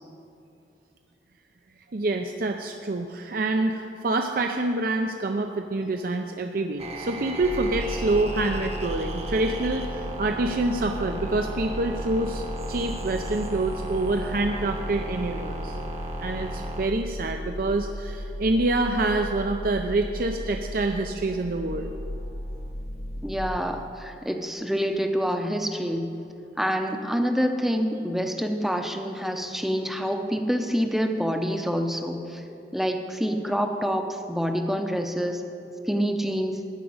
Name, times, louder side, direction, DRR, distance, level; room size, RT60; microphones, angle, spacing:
voice 1, 1.9-15.8 16.2-21.9, right 2 dB, 50° right, 4 dB, 0.5 m, -26 dB
sound 1, 6.8-22.7, right 2 dB, 35° right, 1.0 m, -38 dB
sound 2, 7.4-23.6, equal, 70° left, 0.9 m, -35 dB
voice 2, 23.2-26.1 26.6-32.4 32.7-35.4 35.9-36.6, equal, ahead, 4 dB, 0.7 m, -27 dB
14.5 x 5.1 x 9.5 m, 2.7 s
head